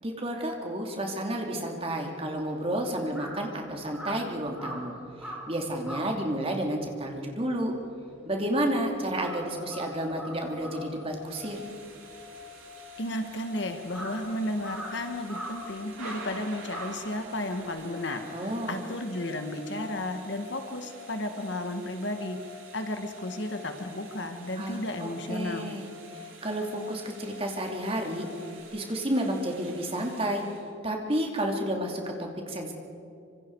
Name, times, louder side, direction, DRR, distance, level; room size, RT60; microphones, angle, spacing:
voice 1, 0.0-4.9 5.2-7.7 8.2-11.6 18.3-18.8 24.6-28.3 28.7-30.4 30.8-32.7, right 1 dB, 30° right, 2 dB, 2.9 m, -31 dB
Crow, 2.3-8.7 9.0-17.7, right 1 dB, 5° right, 5.4 m, -44 dB
sound 1, 8.8-28.6, left 7 dB, 70° right, 4.0 m, -48 dB
Thunder / Rain, 11.1-30.6, right 4 dB, 90° right, 5.8 m, -50 dB
voice 2, 13.0-22.4 22.7-25.7, left 1 dB, 60° left, 6 dB, 1.8 m, -33 dB
26.0 x 26.0 x 4.9 m, 2.6 s
head